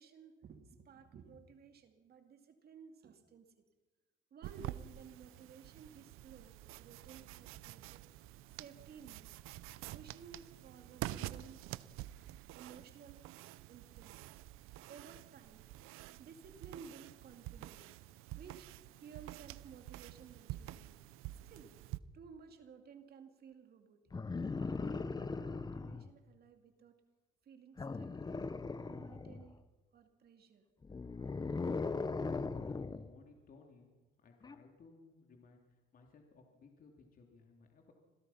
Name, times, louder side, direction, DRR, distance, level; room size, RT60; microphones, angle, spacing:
voice 1, 0.0-3.5 4.3-8.0 8.5-9.2 9.9-11.7 12.5-13.2 13.7-14.3 14.9-15.6 16.2-17.9 18.4-18.7 19.0-20.9 21.4-21.7 22.1-24.0 24.5-27.0 27.4-28.5 28.9-29.6 29.9-30.6, right 6 dB, 50° right, 6 dB, 2.6 m, -56 dB
sound 1, 4.4-22.0, right 15 dB, 80° right, 0.7 m, -48 dB
sound 2, 24.1-26.1 27.8-29.5 30.8-33.1 34.4-34.6, left 4 dB, 20° left, 0.9 m, -39 dB
voice 2, 31.8-33.9 34.2-37.9, left 4 dB, 45° left, 2 dB, 3.1 m, -59 dB
26.5 x 17.0 x 5.8 m, 1.3 s
cardioid pair, 115°, 21 cm